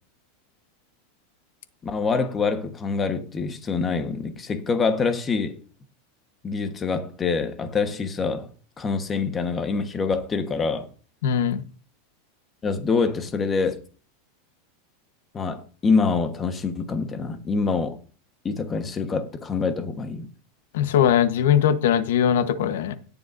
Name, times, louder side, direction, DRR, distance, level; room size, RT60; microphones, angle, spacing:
voice 1, 1.8-5.6 6.4-8.5 8.8-10.9 12.6-13.8 15.3-18.0 18.4-20.3, left 4 dB, 20° left, 1.2 m, -25 dB
voice 2, 11.2-11.6 20.7-23.0, left 9 dB, 80° left, 1.1 m, -20 dB
18.0 x 6.9 x 2.6 m
supercardioid pair, 150°, 0 cm